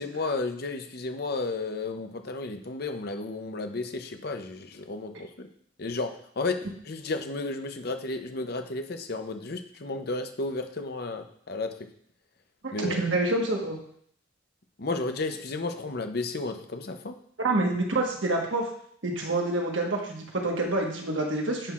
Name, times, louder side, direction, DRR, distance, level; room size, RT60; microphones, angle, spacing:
voice 1, 0.0-5.5 5.8-6.6 6.8-11.7 12.7-13.0 14.8-17.2, left 3 dB, 55° left, 7 dB, 0.7 m, -33 dB
voice 2, 12.6-13.8 17.4-18.6 19.0-21.7, right 2 dB, 85° right, 0 dB, 1.4 m, -27 dB
10.0 x 5.7 x 2.5 m, 0.65 s
head